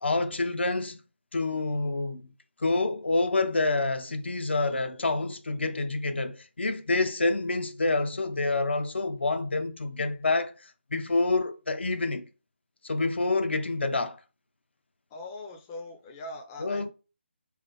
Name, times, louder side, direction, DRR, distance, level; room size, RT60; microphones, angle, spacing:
voice 1, 0.0-1.0 1.3-2.3 2.6-12.3 12.8-14.2 16.6-16.9, left 3 dB, 65° left, 0.5 m, -27 dB
voice 2, 15.1-16.9, left 2 dB, 15° left, 0.5 m, -41 dB
3.5 x 3.1 x 3.4 m
figure-of-eight pair, 150°, 6 cm